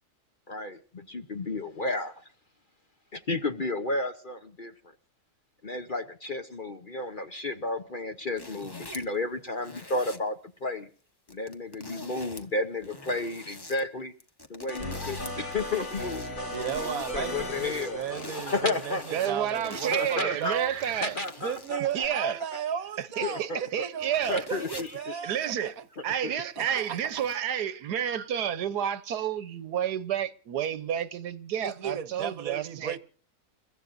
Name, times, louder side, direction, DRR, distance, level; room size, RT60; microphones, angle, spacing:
voice 1, 0.5-2.2 3.1-4.7 5.6-10.9 11.3-14.1 14.5-18.0 18.4-19.0 19.9-22.1 23.2-23.9 24.3-25.3 26.2-26.3, left 2 dB, 40° left, 0.9 m, -32 dB
sound 1, 8.4-9.2 9.6-10.2 11.3-12.5 12.8-13.8 14.2-21.9 22.5-22.6 23.7-23.8 24.0-25.0 26.6-27.4, left 2 dB, 15° left, 1.0 m, -44 dB
sound 2, 14.7-21.2 22.0-22.1, left 1 dB, 70° left, 8.2 m, -39 dB
voice 2, 16.5-20.7 21.4-25.7 26.6-27.2 31.6-33.0, right 8 dB, 65° right, 1.3 m, -35 dB
voice 3, 19.1-21.2 21.9-22.4 23.0-24.5 25.2-25.7 26.0-33.0, right 9 dB, 80° right, 1.5 m, -30 dB
29.5 x 14.5 x 2.6 m
omnidirectional pair, 1.7 m